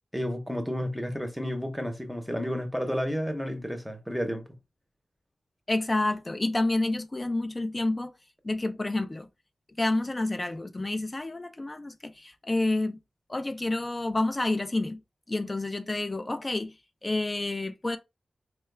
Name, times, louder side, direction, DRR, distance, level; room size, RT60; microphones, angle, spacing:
voice 1, 0.1-4.6, equal, ahead, 0.7 m, -31 dB
voice 2, 5.7-8.1 8.4-9.3 9.8-13.0 13.3-15.0 15.3-18.0, left 2 dB, 20° left, 0.3 m, -29 dB
4.5 x 2.3 x 3.2 m
wide cardioid pair, 160°, 0 cm